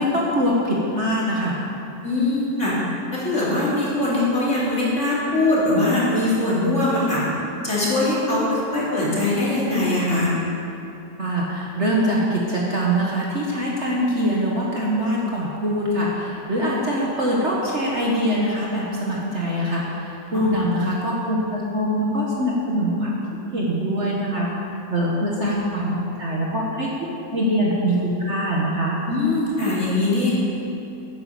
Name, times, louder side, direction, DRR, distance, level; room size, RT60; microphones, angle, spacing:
voice 1, 0.0-1.6 11.2-23.2 23.5-24.5 24.9-29.0, equal, 40° right, -4 dB, 1.5 m, -23 dB
voice 2, 2.0-2.7 3.1-7.2 7.6-10.3 20.3-20.5 29.1-30.3, left 2 dB, 40° left, -8 dB, 3.5 m, -21 dB
10.0 x 9.3 x 7.0 m, 2.8 s
omnidirectional pair, 2.0 m